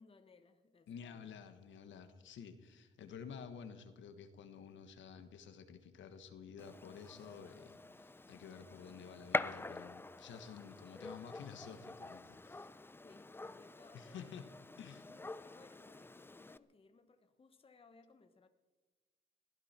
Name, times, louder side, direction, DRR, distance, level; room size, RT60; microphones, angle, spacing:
voice 1, 0.0-1.4 13.0-14.4 15.0-18.5, left 4 dB, 30° left, 8 dB, 1.1 m, -63 dB
voice 2, 0.9-12.7 13.9-14.5 14.8-15.1, left 7 dB, 70° left, 9 dB, 1.5 m, -51 dB
Gunshot gunfire, 6.6-16.6, left 2 dB, 10° left, 0.5 m, -45 dB
21.0 x 15.5 x 4.5 m, 1.3 s
cardioid pair, 90°, 20 cm